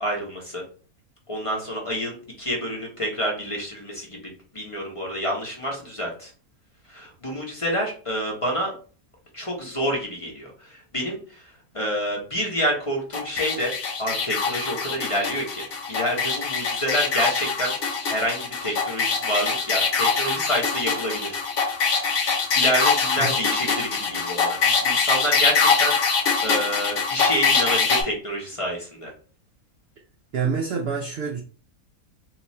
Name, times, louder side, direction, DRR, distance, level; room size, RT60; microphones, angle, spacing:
voice 1, 0.0-0.6 1.3-6.3 6.9-8.7 9.3-11.4 11.7-13.7 14.0-17.7 18.0-21.4 22.5-29.1, equal, 30° left, -1 dB, 0.7 m, -28 dB
sound 1, 13.1-28.0, left 5 dB, 75° left, 1.4 m, -23 dB
voice 2, 30.3-31.4, right 6 dB, 65° right, 3 dB, 0.6 m, -26 dB
2.9 x 2.4 x 4.0 m, 0.40 s
omnidirectional pair, 1.5 m